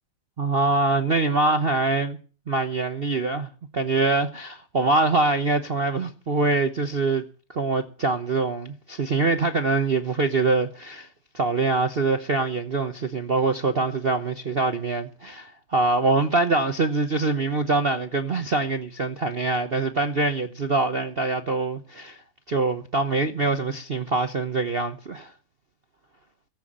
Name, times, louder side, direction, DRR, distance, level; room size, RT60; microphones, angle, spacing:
voice 1, 0.4-2.2 2.5-7.2 7.5-11.1 11.3-22.2 22.5-25.3, right 3 dB, 55° right, 0.6 m, -24 dB
18.0 x 8.3 x 8.7 m
omnidirectional pair, 2.4 m